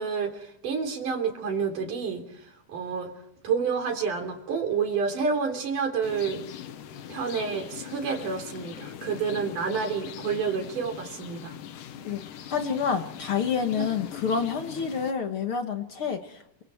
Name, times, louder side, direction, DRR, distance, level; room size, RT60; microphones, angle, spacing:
voice 1, 0.0-2.2 2.7-3.1 3.4-6.4 7.1-11.5, right 5 dB, 90° right, 4 dB, 5.0 m, -29 dB
sound 1, 6.0-15.1, left 10 dB, 85° left, 2.8 m, -41 dB
voice 2, 12.5-16.6, left 6 dB, 50° left, 6 dB, 2.0 m, -28 dB
28.5 x 24.0 x 4.6 m, 0.78 s
omnidirectional pair, 3.6 m